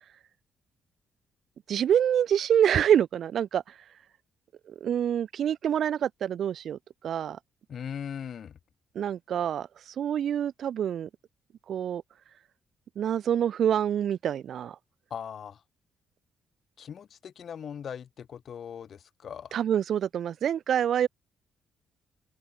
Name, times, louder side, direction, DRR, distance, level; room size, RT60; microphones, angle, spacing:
voice 1, 1.7-3.6 4.7-6.8 7.0-7.4 8.9-9.7 10.0-11.1 11.7-12.0 13.0-14.8 19.5-21.1, right 9 dB, 65° right, 1.0 m, -26 dB
voice 2, 7.7-8.6 15.1-15.6 16.8-19.6, left 8 dB, 55° left, 0.9 m, -39 dB
open air
cardioid pair, 90°, 0 cm